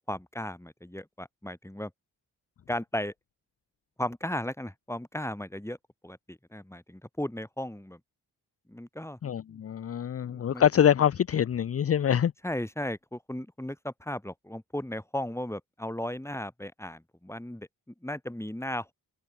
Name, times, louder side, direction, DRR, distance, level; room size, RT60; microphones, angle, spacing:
voice 1, 0.0-1.9 2.7-3.1 4.0-5.8 6.0-8.0 8.7-9.2 10.2-10.6 12.4-17.7 18.0-18.9, left 1 dB, 5° left, 3.1 m, -36 dB
voice 2, 9.2-12.3, left 9 dB, 35° left, 0.5 m, -25 dB
supercardioid pair, 40°, 46 cm